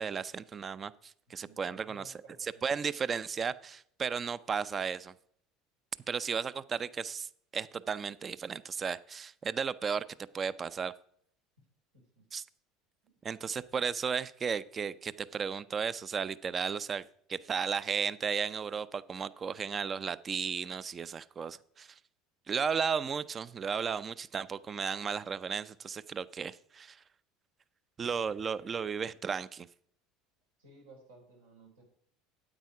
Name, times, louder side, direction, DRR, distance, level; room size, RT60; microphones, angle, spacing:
voice 1, 0.0-2.1 2.4-5.1 6.1-10.0 10.3-10.9 12.3-12.4 13.2-22.0 22.5-27.0 28.0-29.7, right 6 dB, 35° right, 17 dB, 0.5 m, -34 dB
voice 2, 1.3-2.8 11.9-12.3 30.6-31.8, right 2 dB, 85° right, 0 dB, 3.8 m, -57 dB
8.9 x 8.4 x 4.8 m, 0.66 s
hypercardioid pair, 75°, 0 cm